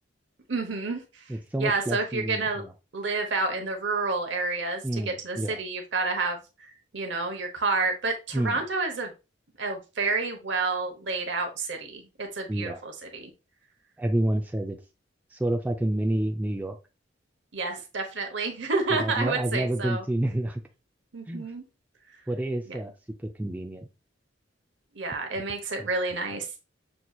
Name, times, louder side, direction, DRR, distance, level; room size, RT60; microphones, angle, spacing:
voice 1, 0.5-1.0 1.6-2.6 2.9-6.4 6.9-9.1 9.6-13.3 17.5-20.0 21.1-21.6 24.9-26.4, right 3 dB, 70° right, 4 dB, 0.9 m, -29 dB
voice 2, 1.3-2.7 4.8-5.6 8.3-8.6 12.5-12.8 14.0-14.8 15.3-16.8 18.9-20.6 21.3-21.5 22.3-22.9 23.4-23.9, right 1 dB, 10° right, 3 dB, 0.3 m, -29 dB
6.0 x 2.7 x 2.3 m, 0.28 s
head